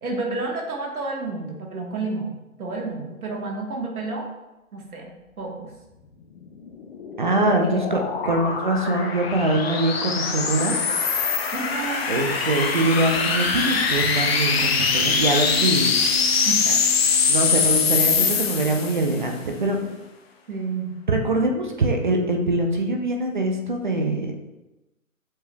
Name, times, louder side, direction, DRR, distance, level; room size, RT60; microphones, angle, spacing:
voice 1, 0.0-2.3 2.6-4.3 4.7-5.7 7.5-7.8 8.2-8.5 11.5-12.1 16.4-16.8 18.3-18.4 20.5-20.9, right 3 dB, 85° right, 0 dB, 1.3 m, -30 dB
sound 1, 6.6-19.2, left 5 dB, 45° left, 0.6 m, -23 dB
voice 2, 7.2-10.8 12.1-15.9 17.3-19.8 21.1-24.3, right 2 dB, 35° right, 3 dB, 0.4 m, -23 dB
sound 2, 12.5-20.1, equal, 15° right, 0.8 m, -39 dB
7.2 x 3.1 x 2.2 m, 0.99 s
hypercardioid pair, 145°, 42 cm